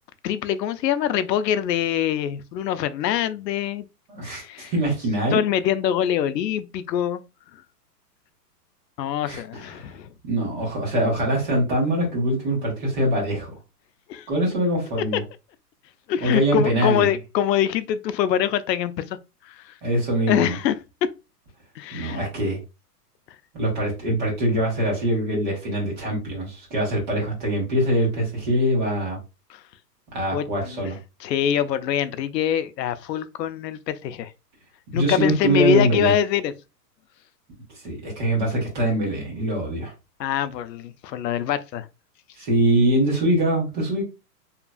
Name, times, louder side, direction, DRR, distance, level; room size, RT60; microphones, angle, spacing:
voice 1, 0.2-3.8 4.3-4.7 5.3-7.2 9.0-10.1 14.1-14.3 16.1-19.2 19.4-19.7 20.3-21.1 21.8-22.2 29.5-29.6 30.3-30.8 31.2-34.3 34.9-36.5 40.2-41.9, left 9 dB, 90° left, 0.6 m, -24 dB
voice 2, 4.1-5.4 9.3-9.4 10.2-13.5 14.3-15.2 16.2-17.1 19.8-20.5 21.9-22.6 23.5-29.2 30.1-31.0 34.9-36.1 37.8-39.9 42.4-44.0, right 1 dB, 30° right, 1.3 m, -23 dB
2.9 x 2.5 x 2.3 m
hypercardioid pair, 175°, 48 cm